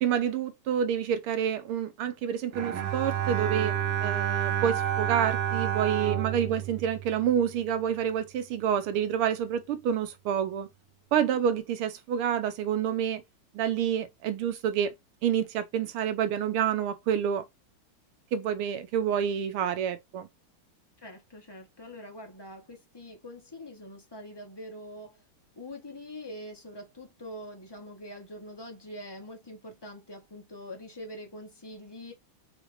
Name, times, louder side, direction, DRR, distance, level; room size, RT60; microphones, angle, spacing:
voice 1, 0.0-10.7 11.1-13.2 13.5-14.9 15.2-17.5 18.3-20.3, right 9 dB, 85° right, 1.7 m, -28 dB
Bowed string instrument, 2.5-7.8, right 10 dB, 65° right, 1.6 m, -30 dB
voice 2, 6.3-6.6 21.0-25.2 25.6-32.1, left 1 dB, 20° left, 0.6 m, -44 dB
5.0 x 2.5 x 3.1 m
omnidirectional pair, 2.4 m